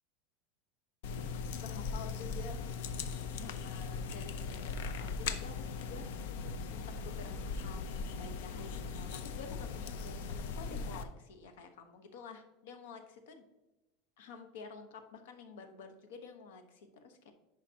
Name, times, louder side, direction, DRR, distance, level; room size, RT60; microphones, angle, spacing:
sound 1, 1.0-11.0, left 5 dB, 70° left, 0.6 m, -39 dB
voice 1, 1.5-2.6 3.3-13.4 14.2-17.3, left 5 dB, 85° left, 7 dB, 1.0 m, -50 dB
10.5 x 5.0 x 2.8 m, 1.0 s
supercardioid pair, 170°, 0 cm